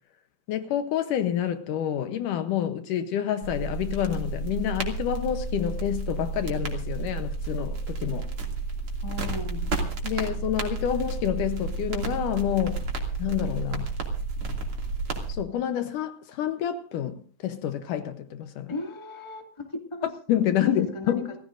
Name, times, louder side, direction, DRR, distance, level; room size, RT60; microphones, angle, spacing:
voice 1, 0.5-8.3 10.0-12.8 13.2-13.9 15.3-18.7 20.0-21.4, left 10 dB, 75° left, 2.3 m, -28 dB
sound 1, 3.4-15.3, right 3 dB, 40° right, 3.2 m, -31 dB
voice 2, 9.0-9.7 18.7-20.1 20.6-21.4, left 3 dB, 10° left, 1.6 m, -36 dB
29.5 x 15.0 x 2.6 m
omnidirectional pair, 4.0 m